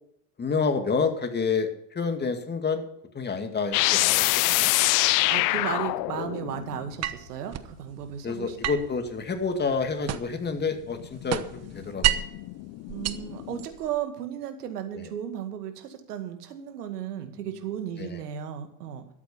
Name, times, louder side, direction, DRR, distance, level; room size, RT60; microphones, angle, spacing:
voice 1, 0.4-1.7 1.9-2.8 3.1-4.7 8.2-11.4 11.7-12.2 14.9-15.1 17.4-17.5 18.0-18.2, left 5 dB, 20° left, 6 dB, 2.3 m, -28 dB
sound 1, 3.7-7.1 9.9-13.7, left 21 dB, 45° left, 0.5 m, -26 dB
voice 2, 5.3-8.6 12.9-19.1, right 9 dB, 80° right, 7 dB, 2.1 m, -35 dB
sound 2, 7.0-7.7 8.6-10.5 10.8-12.4 12.9-14.0, right 11 dB, 35° right, 1.0 m, -30 dB
13.0 x 8.5 x 6.8 m, 0.73 s
hypercardioid pair, 85°, 46 cm